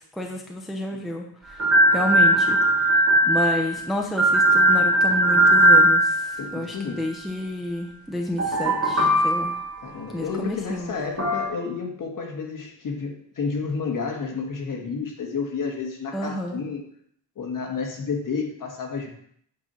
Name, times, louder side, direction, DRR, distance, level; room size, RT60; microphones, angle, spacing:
voice 1, 0.0-9.6 10.1-10.9 16.1-16.6, left 1 dB, ahead, 1 dB, 0.6 m, -30 dB
sound 1, 1.6-3.8 4.2-6.5 8.4-9.8 11.2-11.5, right 1 dB, 35° right, 2.1 m, -18 dB
voice 2, 6.4-7.0 9.8-16.8 17.4-19.1, left 5 dB, 45° left, 1 dB, 1.6 m, -31 dB
8.6 x 5.3 x 4.4 m, 0.66 s
wide cardioid pair, 160°, 43 cm